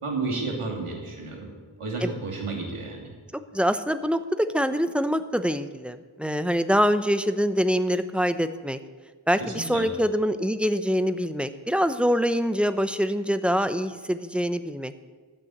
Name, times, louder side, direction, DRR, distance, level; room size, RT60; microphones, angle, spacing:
voice 1, 0.0-1.5 1.8-3.1 9.4-9.9, right 3 dB, 90° right, 0 dB, 2.8 m, -31 dB
voice 2, 3.3-8.8 9.3-14.9, equal, ahead, 11 dB, 0.7 m, -25 dB
12.5 x 8.9 x 7.9 m, 1.4 s
wide cardioid pair, 75°, 49 cm